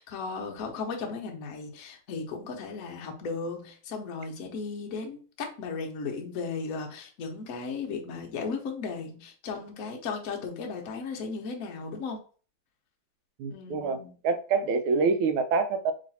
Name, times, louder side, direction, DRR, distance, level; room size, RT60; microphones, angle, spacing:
voice 1, 0.0-12.2 13.5-14.1, left 4 dB, 60° left, 1.0 m, -36 dB
voice 2, 13.4-14.0 14.2-15.9, right 4 dB, 80° right, 1.4 m, -26 dB
3.1 x 3.1 x 4.0 m
omnidirectional pair, 2.3 m